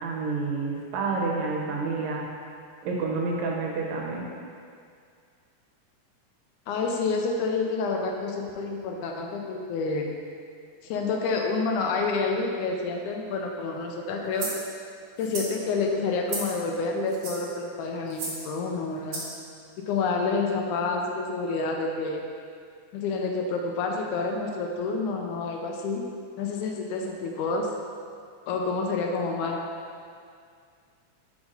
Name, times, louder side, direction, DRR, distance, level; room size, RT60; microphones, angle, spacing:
voice 1, 0.0-2.3 2.8-4.3, right 4 dB, 75° right, -2 dB, 2.0 m, -29 dB
voice 2, 6.7-10.1 10.8-14.5 15.2-19.2 19.8-22.2 22.9-26.1 26.4-27.7 28.5-29.6, left 4 dB, 80° left, 1 dB, 1.9 m, -28 dB
sound 1, 14.4-14.6 15.2-15.5 16.3-16.6 17.1-17.5 18.1-18.4 19.1-19.4, right 2 dB, 50° right, 1.6 m, -34 dB
6.0 x 5.3 x 3.8 m, 2.2 s
omnidirectional pair, 3.6 m